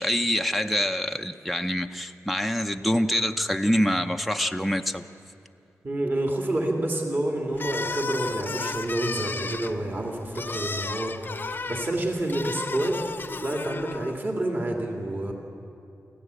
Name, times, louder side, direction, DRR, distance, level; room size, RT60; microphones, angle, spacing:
voice 1, 0.0-5.0, equal, ahead, 5 dB, 0.6 m, -25 dB
voice 2, 5.8-11.1 11.7-13.0 13.4-15.3, right 1 dB, 35° right, 2 dB, 2.3 m, -28 dB
sound 1, 7.5-14.2, left 4 dB, 35° left, 0.7 m, -33 dB
24.5 x 16.0 x 8.2 m, 2.7 s
wide cardioid pair, 130°, 6 cm